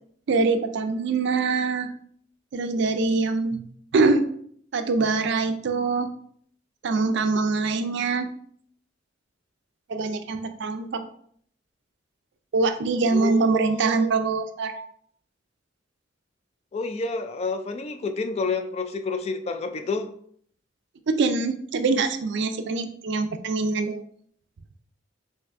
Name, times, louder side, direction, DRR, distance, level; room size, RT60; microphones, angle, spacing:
voice 1, 0.3-1.9 2.5-3.6 3.9-4.2 4.7-6.1 6.8-8.3 9.9-11.0 12.5-14.9 21.1-24.0, right 3 dB, 65° right, 8 dB, 0.4 m, -24 dB
voice 2, 13.0-14.1 16.7-20.1, left 3 dB, 35° left, 7 dB, 0.3 m, -29 dB
5.6 x 2.6 x 2.5 m, 0.62 s
head